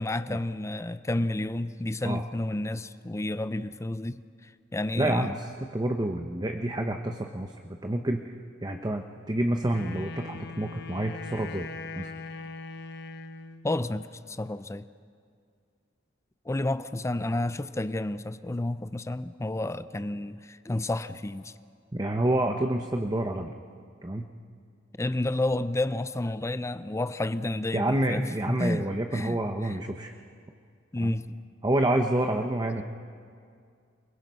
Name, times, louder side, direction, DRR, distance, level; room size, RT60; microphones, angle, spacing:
voice 1, 0.0-5.4 13.6-14.9 16.5-21.5 25.0-29.4 29.6-29.8 30.9-31.3, left 1 dB, 15° left, 13 dB, 0.5 m, -31 dB
voice 2, 5.0-8.3 8.6-11.7 12.0-12.1 21.9-23.5 24.0-24.3 27.7-30.1 31.0-31.2 31.6-32.8, right 1 dB, 20° right, 5 dB, 0.8 m, -28 dB
Wind instrument woodwind instrument, 9.7-13.7, left 3 dB, 60° left, 0.9 m, -40 dB
29.0 x 20.5 x 5.5 m, 2.2 s
head